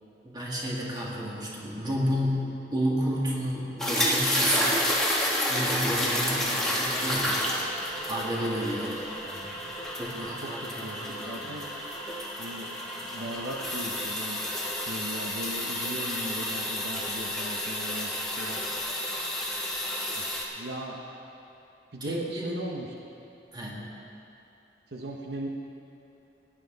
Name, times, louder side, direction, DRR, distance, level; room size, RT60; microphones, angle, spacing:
voice 1, 0.2-4.9 5.5-7.4 8.1-8.9 9.2-9.5 10.0-11.5 22.0-22.6 23.5-23.9, equal, 25° right, -4 dB, 2.0 m, -31 dB
sound 1, 3.8-20.4, left 1 dB, 5° left, 1.5 m, -30 dB
voice 2, 6.2-6.7 8.7-9.4 10.1-11.7 12.4-12.7 13.1-14.4 14.8-18.6 20.2-20.3 20.6-21.0 21.9-23.0 24.9-25.5, right 1 dB, 65° right, 0 dB, 0.9 m, -38 dB
18.0 x 10.0 x 4.0 m, 2.9 s
head